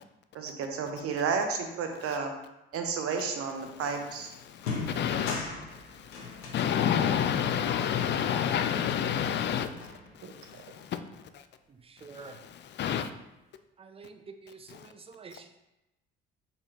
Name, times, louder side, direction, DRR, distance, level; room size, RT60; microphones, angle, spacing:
voice 1, 0.3-2.3 2.7-4.3 10.2-10.3, right 5 dB, 50° right, 5 dB, 0.8 m, -32 dB
sound 1, 4.0-4.1 4.5-9.1 9.4-10.4, left 4 dB, 75° left, 0.8 m, -40 dB
voice 2, 4.4-5.4 5.9-9.7 10.2-11.0 11.3-11.4 12.2-13.1, left 9 dB, 40° left, 9 dB, 0.4 m, -29 dB
voice 3, 11.7-12.4 13.8-15.6, right 4 dB, 20° right, 7 dB, 0.5 m, -48 dB
4.2 x 3.8 x 2.9 m, 0.95 s
figure-of-eight pair, 50°, 30 cm